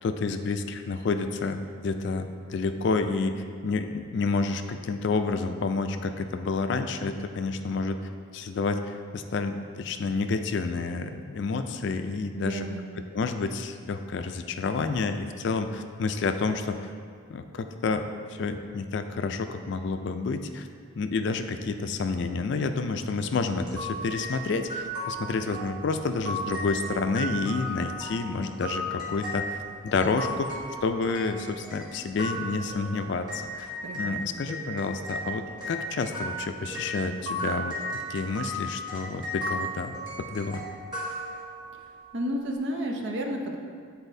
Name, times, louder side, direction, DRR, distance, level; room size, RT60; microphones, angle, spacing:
voice 1, 0.0-8.0 8.3-12.6 13.0-16.9 17.3-20.7 21.0-30.6 30.8-40.6, left 4 dB, 55° left, 7 dB, 0.3 m, -29 dB
voice 2, 12.4-12.9 33.8-34.4 42.1-43.6, equal, 55° right, 1 dB, 0.6 m, -32 dB
sound 1, 23.7-34.1 34.5-41.8, equal, 20° right, 1.3 m, -35 dB
9.9 x 4.1 x 2.7 m, 2.1 s
head